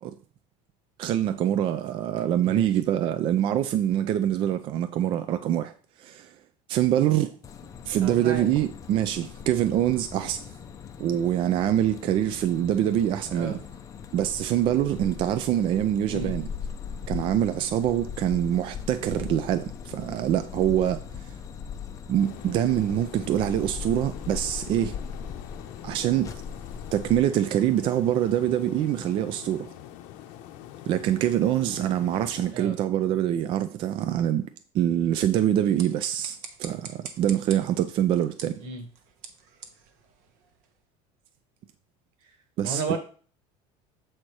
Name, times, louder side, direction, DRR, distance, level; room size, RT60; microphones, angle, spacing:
voice 1, 1.0-5.7 6.0-6.3 6.7-7.3 7.8-10.4 11.0-13.6 14.1-16.5 17.1-21.1 22.1-25.0 25.8-26.3 26.9-29.7 30.9-34.5 34.7-38.6 42.6-42.8, right 11 dB, 35° right, 0.4 m, -25 dB
sound 1, 7.4-27.2, left 6 dB, 20° left, 0.5 m, -39 dB
voice 2, 8.0-8.5 13.3-13.6 16.1-16.3 32.5-32.8 38.6-38.8 42.6-43.0, right 4 dB, 75° right, 1.7 m, -33 dB
sound 2, 22.2-32.5, left 12 dB, 55° left, 0.7 m, -45 dB
sound 3, 35.5-40.8, right 6 dB, 60° right, 1.1 m, -45 dB
7.7 x 4.3 x 4.7 m
cardioid pair, 175°, 15 cm